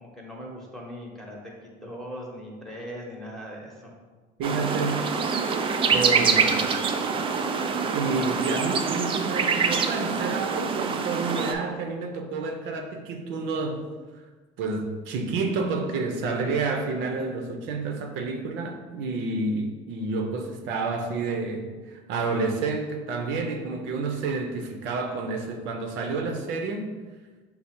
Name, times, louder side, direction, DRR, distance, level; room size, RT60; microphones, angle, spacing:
voice 1, 0.0-3.9, equal, ahead, -3 dB, 0.9 m, -40 dB
sound 1, 4.4-11.5, right 5 dB, 25° right, 0.3 m, -25 dB
voice 2, 4.4-5.1 5.9-6.6 7.9-13.9 14.6-26.9, right 3 dB, 70° right, 4 dB, 0.6 m, -29 dB
5.3 x 2.0 x 4.3 m, 1.4 s
cardioid pair, 120°, 20 cm